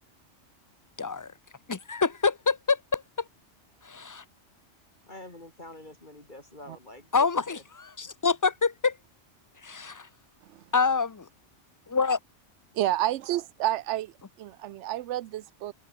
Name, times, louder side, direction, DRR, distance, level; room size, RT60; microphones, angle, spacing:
voice 1, 1.0-1.3 1.7-3.0 3.8-4.2 7.1-7.6 8.0-9.0 9.6-10.1 10.7-11.3 11.9-12.2, left 4 dB, 20° left, 0.6 m, -26 dB
voice 2, 5.0-7.6 8.0-8.1, left 1 dB, 40° left, 3.8 m, -47 dB
voice 3, 12.7-14.1 14.4-15.7, right 13 dB, 80° right, 0.9 m, -29 dB
omnidirectional pair, 1.2 m